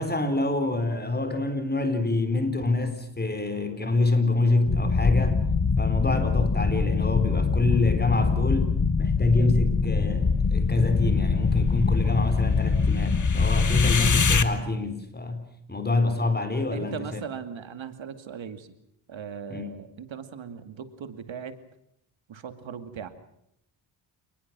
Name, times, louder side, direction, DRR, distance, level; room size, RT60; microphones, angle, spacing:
voice 1, 0.0-5.5 5.8-15.4 15.7-17.2 19.5-19.7, left 2 dB, 20° left, 4.4 m, -26 dB
sound 1, 4.7-14.4, left 4 dB, 40° left, 1.8 m, -23 dB
voice 2, 16.7-18.7 19.1-21.6 22.3-23.1, right 7 dB, 70° right, 2.4 m, -38 dB
29.0 x 20.5 x 6.1 m
wide cardioid pair, 110°, 47 cm